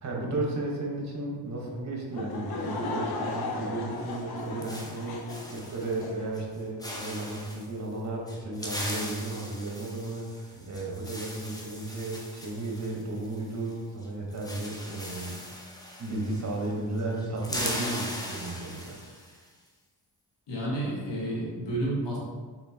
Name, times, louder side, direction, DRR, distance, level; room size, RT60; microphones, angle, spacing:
voice 1, 0.0-15.4 16.0-19.0, right 2 dB, 40° right, -1 dB, 1.1 m, -34 dB
Laughter / Crowd, 2.1-6.3, left 2 dB, 60° left, 0.7 m, -36 dB
sound 1, 4.1-6.1 6.4-6.6 6.8-7.7 8.3-13.7 14.0-14.1 14.3-16.7 17.0-19.4, left 1 dB, 10° left, 0.7 m, -39 dB
voice 2, 20.5-22.2, right 1 dB, 80° left, -5 dB, 1.4 m, -30 dB
4.3 x 3.8 x 2.8 m, 1.5 s
cardioid pair, 70°, 42 cm